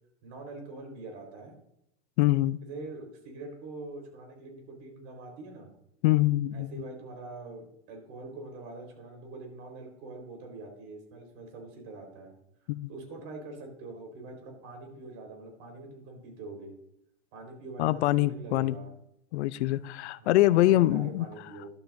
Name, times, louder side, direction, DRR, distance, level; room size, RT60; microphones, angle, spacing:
voice 1, 0.2-1.5 2.7-5.7 6.5-12.3 12.9-16.7 17.3-18.9 20.2-21.7, right 2 dB, 50° right, 4.2 m, -44 dB
voice 2, 2.2-2.6 6.0-6.7 12.7-12.9 17.8-18.8 19.3-21.3, left 16 dB, 75° left, 0.6 m, -24 dB
12.5 x 11.5 x 2.6 m
supercardioid pair, 135°, 33 cm